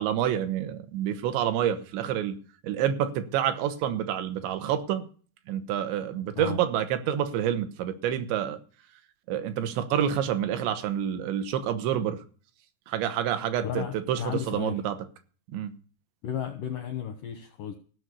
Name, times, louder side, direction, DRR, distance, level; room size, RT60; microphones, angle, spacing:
voice 1, 0.0-2.4 2.6-5.1 5.5-8.6 9.3-12.2 12.9-15.0 15.5-15.7, right 10 dB, 85° right, 3.5 m, -28 dB
voice 2, 13.6-14.8 16.2-17.7, left 9 dB, 80° left, 1.9 m, -34 dB
16.0 x 6.3 x 8.3 m
omnidirectional pair, 5.0 m